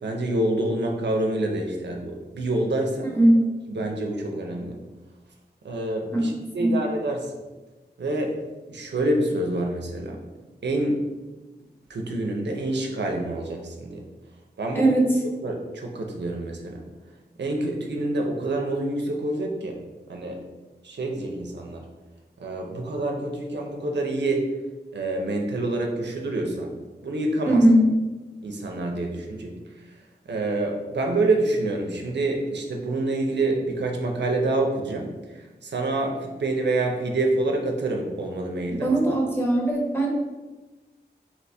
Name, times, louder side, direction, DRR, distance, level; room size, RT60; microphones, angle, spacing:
voice 1, 0.0-3.2 3.7-4.8 5.6-7.3 8.0-8.3 8.7-10.2 10.6-11.0 11.9-14.0 14.6-14.9 15.4-16.9 17.4-19.8 20.1-20.4 20.8-21.9 22.4-24.5 24.9-26.7 27.0-27.6 28.4-30.0 30.3-38.9, right 2 dB, 85° right, 1 dB, 0.6 m, -27 dB
voice 2, 27.5-27.8 38.7-40.1, right 1 dB, 10° left, -2 dB, 1.0 m, -19 dB
3.3 x 3.0 x 4.1 m, 1.2 s
wide cardioid pair, 70°, 18 cm